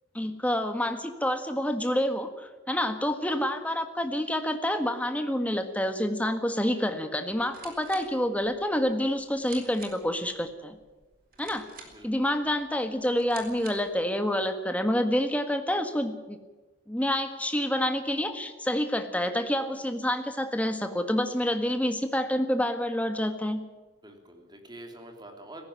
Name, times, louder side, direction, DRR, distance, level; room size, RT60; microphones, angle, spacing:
voice 1, 0.1-10.8 11.4-11.7 12.0-16.4 16.9-23.6, left 1 dB, 10° left, 7 dB, 1.7 m, -28 dB
sound 1, 7.3-14.0, right 5 dB, 50° right, 4.0 m, -50 dB
voice 2, 24.0-25.7, right 1 dB, 20° right, 4 dB, 3.2 m, -46 dB
17.5 x 15.0 x 10.0 m, 1.2 s
head